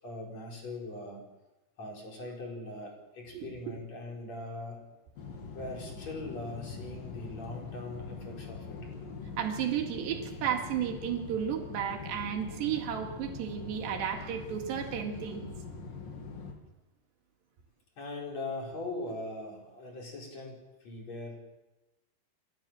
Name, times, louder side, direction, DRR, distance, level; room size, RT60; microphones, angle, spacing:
voice 1, 0.0-1.2 1.8-4.8 5.5-8.8 18.0-21.4, left 2 dB, 40° left, -1 dB, 5.8 m, -41 dB
voice 2, 3.3-3.8 9.4-15.5, right 9 dB, 85° right, 3 dB, 4.4 m, -33 dB
sound 1, 5.2-16.5, left 4 dB, 60° left, 4.1 m, -43 dB
29.5 x 13.0 x 7.7 m, 1.0 s
omnidirectional pair, 4.8 m